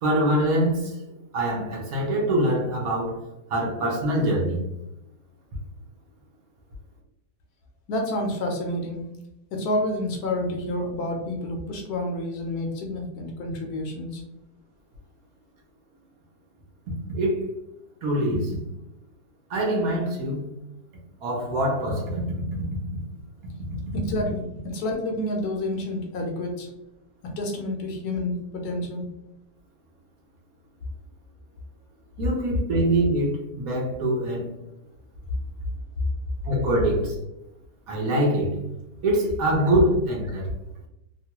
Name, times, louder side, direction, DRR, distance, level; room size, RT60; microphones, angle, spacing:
voice 1, 0.0-0.9 1.3-3.2 3.5-4.6 17.1-17.4 18.0-18.6 19.5-20.5 21.2-22.3 32.2-34.5 36.4-37.2 37.9-38.6 39.0-40.5, right 1 dB, 65° right, -2 dB, 1.1 m, -24 dB
voice 2, 7.9-9.1 9.5-14.2 23.9-26.7 27.2-29.1, left 1 dB, 70° left, 1 dB, 1.1 m, -29 dB
3.0 x 2.2 x 2.8 m, 0.89 s
omnidirectional pair, 1.8 m